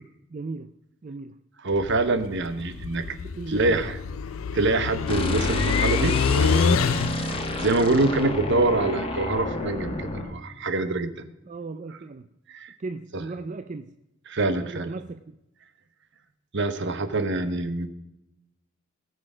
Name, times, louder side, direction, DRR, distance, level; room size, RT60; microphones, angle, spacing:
voice 1, 0.3-0.7 1.0-1.4 3.0-3.1 3.4-3.8 11.5-12.3 12.8-14.0 14.6-15.3, right 3 dB, 40° right, 0.4 m, -36 dB
voice 2, 1.6-3.1 3.5-4.0 4.5-11.3 12.5-12.7 13.1-13.2 14.3-14.9 16.5-17.9, right 2 dB, 60° right, 1.1 m, -25 dB
sound 1, 1.7-7.4, left 6 dB, 90° left, 0.5 m, -26 dB
sound 2, 5.1-10.3, left 2 dB, 30° left, 1.3 m, -30 dB
18.0 x 6.7 x 5.0 m
head